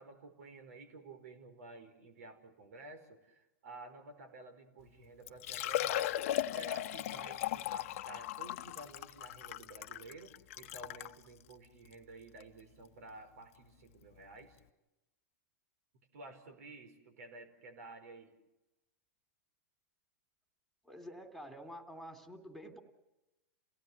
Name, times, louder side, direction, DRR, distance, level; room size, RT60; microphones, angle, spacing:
voice 1, 0.0-6.2 6.5-14.6 16.1-18.3, right 2 dB, 75° right, 9 dB, 5.0 m, -52 dB
Liquid, 4.8-4.9 5.3-11.2 11.9-12.0 12.4-12.5 14.1-14.2 14.4-14.5, left 13 dB, 65° left, 1.0 m, -37 dB
voice 2, 20.8-22.8, equal, ahead, 6 dB, 3.3 m, -48 dB
29.5 x 17.5 x 8.1 m, 1.0 s
hypercardioid pair, 120°, 8 cm